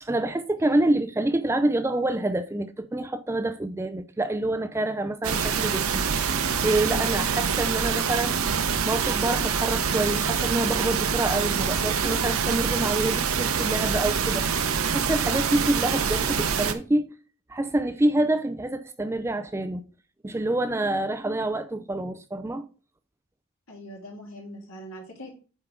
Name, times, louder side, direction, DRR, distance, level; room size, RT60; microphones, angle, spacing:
voice 1, 0.0-6.1 6.6-8.5 8.9-14.5 14.9-17.1 17.5-19.8 20.2-22.6, right 1 dB, 10° right, 0.3 m, -27 dB
sound 1, 5.2-16.7, right 6 dB, 85° right, 0.8 m, -25 dB
voice 2, 23.7-25.3, equal, 75° left, 2.6 m, -41 dB
8.3 x 3.4 x 4.9 m
head